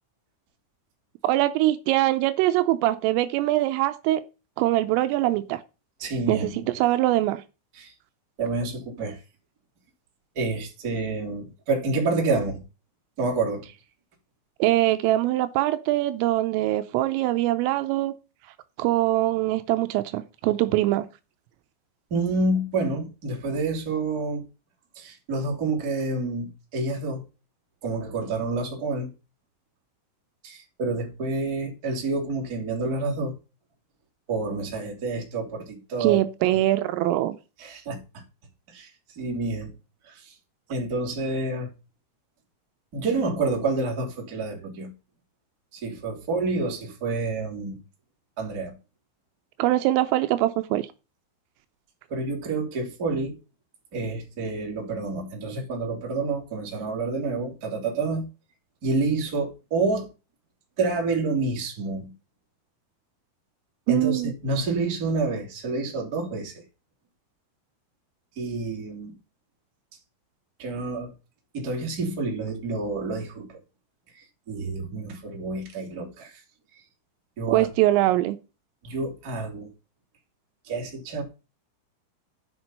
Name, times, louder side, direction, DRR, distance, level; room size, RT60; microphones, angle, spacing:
voice 1, 1.2-4.2 4.6-5.6 6.3-7.4 14.6-18.1 18.8-21.1 36.0-37.4 49.6-50.9 63.9-64.3 77.5-78.4, right 15 dB, 85° right, 3.2 m, -23 dB
voice 2, 6.0-6.7 7.8-7.9 8.4-9.2 10.3-12.6 13.2-13.7 22.1-24.4 24.9-27.2 27.8-29.1 30.4-33.3 34.3-36.5 37.6-38.0 38.7-38.9 39.2-39.7 40.0-40.3 40.7-41.7 42.9-44.9 45.7-47.8 48.4-48.7 52.1-53.4 53.9-58.3 58.8-60.1 60.8-62.1 63.9-66.6 68.4-69.2 70.6-71.1 71.5-73.6 74.1-76.4 77.4-77.7 78.8-79.7 80.6-81.2, right 3 dB, 30° right, 2.0 m, -28 dB
10.0 x 6.2 x 5.4 m
omnidirectional pair, 5.9 m